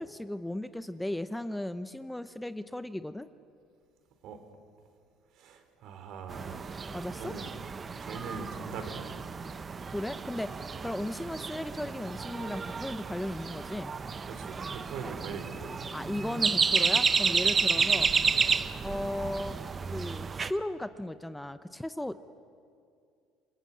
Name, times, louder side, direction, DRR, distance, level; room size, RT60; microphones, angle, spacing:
voice 1, 0.0-3.3 6.9-7.3 9.9-14.0 15.9-18.1 18.8-19.6 19.9-22.2, left 1 dB, 5° left, 12 dB, 0.7 m, -36 dB
voice 2, 5.3-6.7 7.2-7.5 8.0-9.2 14.3-15.8 17.7-17.8, right 5 dB, 60° right, 7 dB, 3.7 m, -42 dB
sound 1, 6.3-20.5, right 5 dB, 25° right, 0.8 m, -31 dB
28.5 x 21.5 x 8.4 m, 2.3 s
cardioid pair, 125°, 0 cm